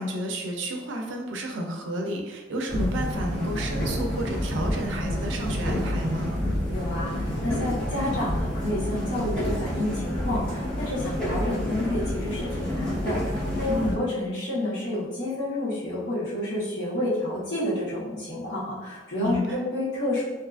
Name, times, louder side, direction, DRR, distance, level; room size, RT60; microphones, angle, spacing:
voice 1, 0.0-6.3 13.7-13.9 19.2-19.6, equal, 75° right, 2 dB, 0.5 m, -31 dB
sound 1, 2.7-13.9, equal, 5° left, 0.8 m, -29 dB
voice 2, 6.7-20.2, left 1 dB, 70° left, -8 dB, 1.0 m, -29 dB
2.7 x 2.4 x 2.4 m, 1.2 s
head